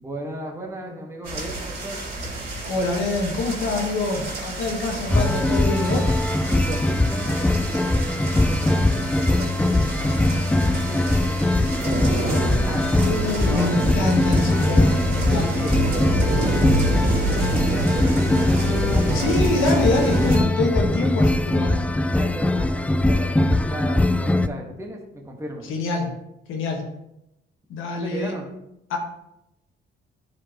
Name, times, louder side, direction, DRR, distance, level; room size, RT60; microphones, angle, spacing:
voice 1, 0.0-2.0 6.5-11.9 12.2-13.1 13.5-13.7 15.3-19.3 19.6-20.5 22.1-25.7 27.9-28.5, right 1 dB, 15° right, 0 dB, 1.4 m, -36 dB
sound 1, 1.2-20.4, right 1 dB, 50° right, 2.8 m, -28 dB
voice 2, 2.7-6.1 13.0-15.7 19.1-21.9 25.7-26.1 26.5-26.9 27.7-28.4 28.9-29.0, left 2 dB, 85° left, 1 dB, 1.4 m, -25 dB
sound 2, 5.1-24.5, left 1 dB, 5° left, 0.3 m, -21 dB
9.8 x 5.0 x 2.9 m, 0.86 s
cardioid pair, 90°, 20 cm